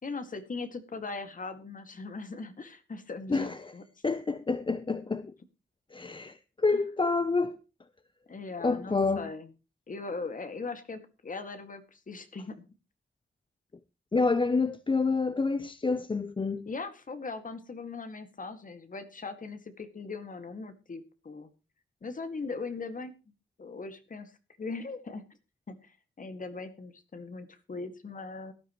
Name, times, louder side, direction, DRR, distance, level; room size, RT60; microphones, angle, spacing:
voice 1, 0.0-3.8 6.7-6.8 8.3-9.5 9.9-12.7 16.7-21.5 22.0-23.1 23.6-24.3 24.6-25.3 25.7-28.5, left 4 dB, 40° left, 2.0 m, -39 dB
voice 2, 3.3-3.7 4.0-5.3 5.9-7.6 8.6-9.3 14.1-16.6, left 4 dB, 25° left, 0.6 m, -28 dB
18.0 x 12.5 x 3.1 m
wide cardioid pair, 175°, 20 cm